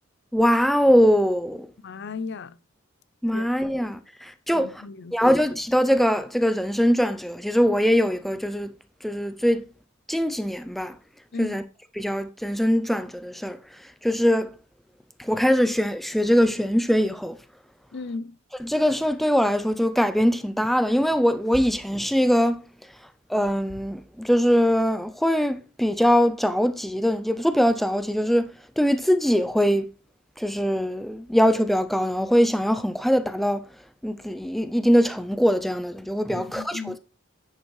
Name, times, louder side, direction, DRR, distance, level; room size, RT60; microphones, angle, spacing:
voice 1, 0.3-1.7 3.2-4.8 5.1-8.7 9.0-9.6 10.1-10.9 11.4-11.6 12.0-13.6 14.0-14.5 15.2-17.4 18.6-22.6 23.3-29.9 30.4-33.6 34.0-37.0, equal, ahead, 0.4 m, -22 dB
voice 2, 1.8-2.6 3.3-3.5 4.5-5.3 11.3-11.6 17.9-18.3 36.3-37.0, left 4 dB, 55° left, 0.5 m, -35 dB
10.0 x 5.2 x 3.1 m
head